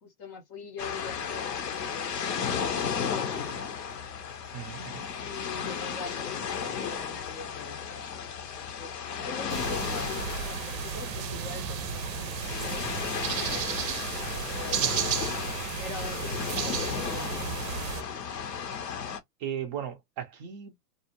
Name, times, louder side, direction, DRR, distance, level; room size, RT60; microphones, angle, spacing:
voice 1, 0.0-3.7 5.2-8.2 8.5-14.0 14.5-15.4 15.8-18.1, left 4 dB, 30° left, 0.5 m, -43 dB
sound 1, 0.8-19.2, left 7 dB, 75° left, 0.9 m, -34 dB
voice 2, 4.5-5.0 14.8-15.1 19.4-20.9, right 9 dB, 30° right, 0.4 m, -37 dB
sound 2, 9.5-18.0, right 9 dB, 85° right, 0.6 m, -33 dB
2.5 x 2.1 x 2.8 m
hypercardioid pair, 120°, 49 cm